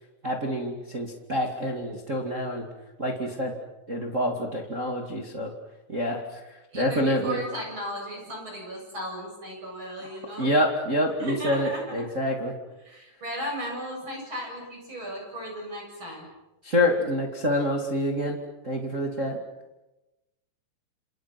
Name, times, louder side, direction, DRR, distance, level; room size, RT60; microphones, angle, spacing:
voice 1, 0.2-2.7 3.0-3.6 3.9-5.5 5.9-6.4 6.7-7.4 10.4-12.5 16.6-18.4 18.6-19.4, left 1 dB, 50° right, 1 dB, 0.9 m, -27 dB
voice 2, 6.7-10.5 11.2-12.1 12.8-16.3, equal, 25° right, 0 dB, 8.5 m, -36 dB
29.0 x 28.0 x 6.0 m, 1.0 s
omnidirectional pair, 5.8 m